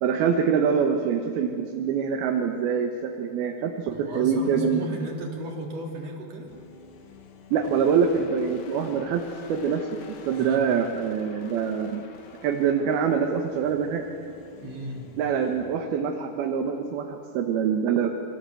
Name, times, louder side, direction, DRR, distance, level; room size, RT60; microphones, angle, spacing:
voice 1, 0.0-5.0 7.5-9.2 9.5-10.0 10.3-12.0 12.4-14.0 15.2-18.1, right 6 dB, 85° right, 3 dB, 3.2 m, -25 dB
voice 2, 3.9-6.5 10.3-10.7 14.6-15.1, equal, 45° right, 0 dB, 4.4 m, -35 dB
sound 1, 6.5-16.8, left 4 dB, 65° left, 3.2 m, -48 dB
28.0 x 24.5 x 7.8 m, 2.6 s
omnidirectional pair, 4.3 m